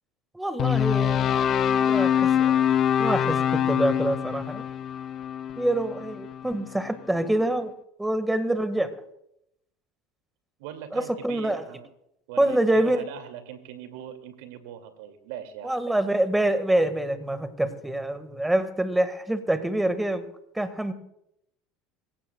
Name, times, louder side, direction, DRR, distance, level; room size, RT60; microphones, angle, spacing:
voice 1, 0.3-2.7 3.0-4.8 5.6-7.7 8.0-8.9 10.9-11.6 12.4-13.0 15.6-20.2 20.5-20.9, right 1 dB, 5° right, 11 dB, 1.6 m, -26 dB
sound 1, 0.6-6.8, left 9 dB, 45° left, 0.5 m, -24 dB
voice 2, 10.6-11.9 12.3-15.8, right 9 dB, 75° right, 7 dB, 2.3 m, -41 dB
25.5 x 16.0 x 2.3 m, 0.79 s
hypercardioid pair, 85°, 0 cm